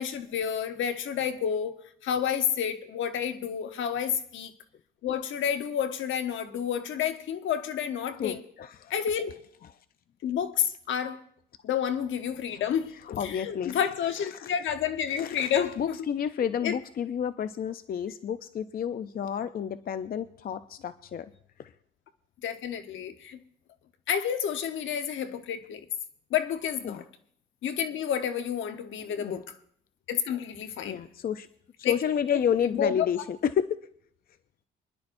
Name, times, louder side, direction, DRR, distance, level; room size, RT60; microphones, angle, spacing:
voice 1, 0.0-1.8 2.0-4.5 5.0-8.4 8.9-9.3 10.2-11.2 11.6-16.0 16.6-16.8 22.4-23.4 24.1-25.9 26.3-27.0 27.6-29.6 30.1-31.0 31.8-32.0 32.3-33.1, left 8 dB, 75° left, 1.1 m, -30 dB
voice 2, 8.2-9.0 13.1-13.8 14.3-14.5 15.1-21.3 21.6-21.7 26.8-27.0 29.2-29.4 30.8-31.5 31.8-33.8, left 8 dB, 50° left, 0.6 m, -30 dB
25.5 x 11.0 x 2.6 m
cardioid pair, 90°, 20 cm